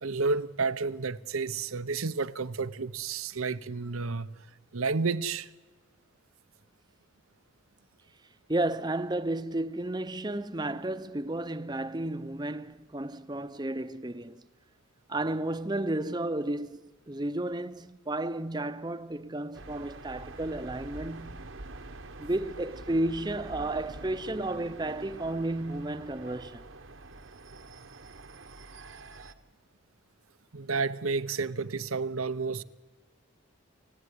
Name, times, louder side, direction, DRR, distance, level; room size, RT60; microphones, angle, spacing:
voice 1, 0.0-4.3 4.7-5.5 30.5-32.6, right 4 dB, 90° right, 0.9 m, -31 dB
voice 2, 8.5-14.4 15.1-21.5 22.2-26.6, right 1 dB, 20° right, 0.7 m, -32 dB
sound 1, 19.5-29.3, right 2 dB, 70° right, 1.3 m, -46 dB
29.5 x 16.0 x 9.7 m
head